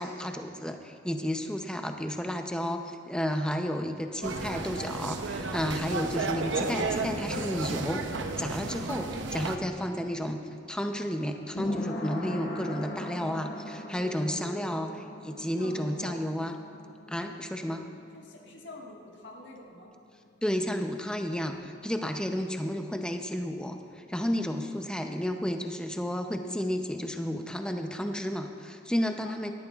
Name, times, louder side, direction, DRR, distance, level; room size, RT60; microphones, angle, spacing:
voice 1, 0.0-8.0 8.4-10.4 10.7-16.5 17.1-17.9 20.4-29.5, equal, 5° left, 5 dB, 0.6 m, -32 dB
sound 1, 4.2-9.6, right 3 dB, 90° right, 0.8 m, -32 dB
sound 2, 9.9-20.0 20.3-20.4, left 1 dB, 60° left, 1.5 m, -40 dB
voice 2, 11.2-11.7 15.6-16.2 18.1-19.9 29.2-29.5, left 2 dB, 80° left, -1 dB, 1.6 m, -46 dB
17.5 x 12.5 x 2.4 m, 2.6 s
head